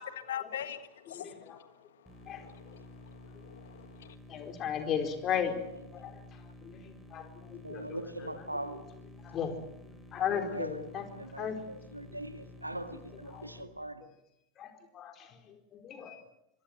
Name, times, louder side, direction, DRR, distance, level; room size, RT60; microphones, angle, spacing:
voice 1, 0.0-4.2, left 10 dB, 60° left, 1.6 m, -43 dB
sound 1, 2.1-13.6, left 1 dB, ahead, 7.4 m, -52 dB
voice 2, 4.3-5.5 5.9-6.2 6.6-6.8 7.1-8.0 9.2-9.5 10.1-11.0 11.4-11.6 13.3-13.4 14.6-16.2, left 8 dB, 30° left, 4.5 m, -35 dB
voice 3, 5.3-5.8 7.5-8.8 10.4-14.1, right 1 dB, 85° right, 2.0 m, -41 dB
25.0 x 24.0 x 7.8 m
figure-of-eight pair, 90°, 0 cm